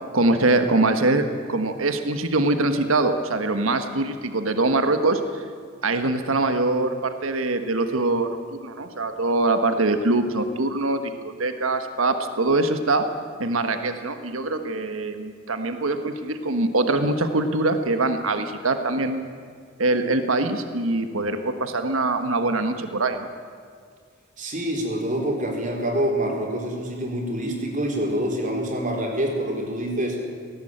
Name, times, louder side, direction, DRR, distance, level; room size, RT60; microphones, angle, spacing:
voice 1, 0.1-5.4 5.8-13.1 13.4-19.3 19.8-23.3, right 2 dB, 90° right, 7 dB, 1.4 m, -23 dB
voice 2, 24.4-30.2, right 1 dB, 40° right, 0 dB, 4.0 m, -26 dB
18.5 x 18.0 x 8.9 m, 2.1 s
head